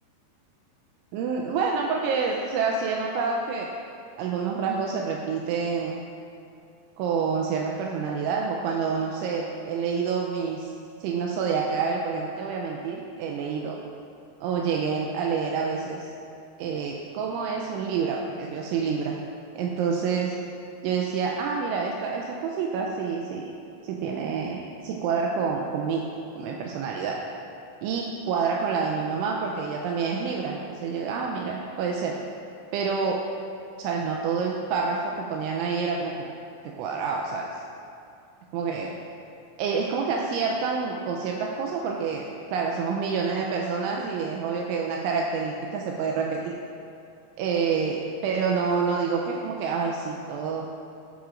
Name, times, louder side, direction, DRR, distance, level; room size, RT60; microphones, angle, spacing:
voice 1, 1.1-3.7 4.2-6.0 7.0-10.7 11.0-13.8 14.4-16.1 16.6-19.2 19.6-20.4 20.8-23.5 23.8-26.1 26.4-27.2 27.8-32.2 32.7-33.2 33.8-36.3 36.8-37.5 38.5-38.9 39.6-42.2 42.5-46.5 47.4-50.7, right 5 dB, 85° right, 0 dB, 2.8 m, -28 dB
13.5 x 10.5 x 2.5 m, 2.6 s
omnidirectional pair, 5.7 m